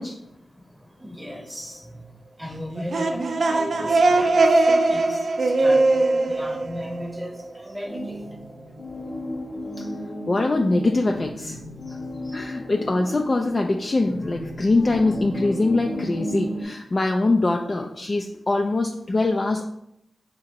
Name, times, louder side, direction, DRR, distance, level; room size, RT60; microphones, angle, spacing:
voice 1, 0.2-8.6, equal, 5° right, 3 dB, 0.9 m, -37 dB
sound 1, 2.7-7.4, right 2 dB, 70° right, 0.4 m, -20 dB
sound 2, 7.8-16.6, left 1 dB, 60° left, 1.0 m, -34 dB
voice 2, 10.3-11.6 12.3-19.7, left 2 dB, 40° left, 2 dB, 0.4 m, -23 dB
3.8 x 2.9 x 4.4 m, 0.76 s
cardioid pair, 50°, 0 cm